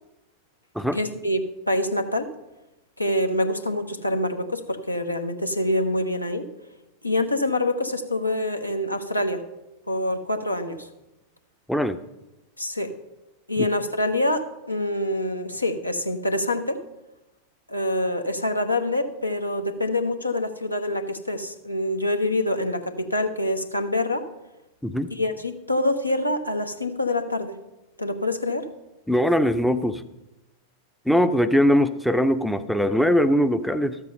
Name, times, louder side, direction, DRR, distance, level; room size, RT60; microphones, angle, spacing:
voice 1, 0.9-2.3 3.0-6.5 7.0-9.4 9.9-10.9 12.6-12.9 13.5-16.8 17.7-24.3 25.1-27.5 28.0-28.7, left 1 dB, 85° left, 6 dB, 0.9 m, -26 dB
voice 2, 29.1-30.0 31.1-34.0, equal, ahead, 9 dB, 0.5 m, -21 dB
13.0 x 7.5 x 5.4 m, 0.97 s
figure-of-eight pair, 90°, 0 cm